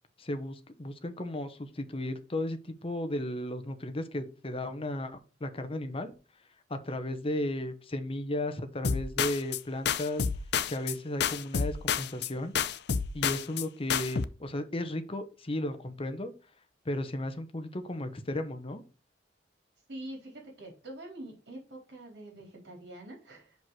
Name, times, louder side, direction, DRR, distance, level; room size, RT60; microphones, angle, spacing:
voice 1, 0.2-6.1 6.7-10.3 10.7-12.5 13.1-16.3 16.8-18.8, left 1 dB, 30° left, 8 dB, 0.9 m, -35 dB
sound 1, 8.8-9.6 9.9-11.0 11.2-12.3 12.5-13.6 13.9-14.3, left 7 dB, 65° left, 0.5 m, -29 dB
voice 2, 19.9-23.6, right 1 dB, 70° right, 0 dB, 3.8 m, -45 dB
5.9 x 5.3 x 4.7 m, 0.34 s
head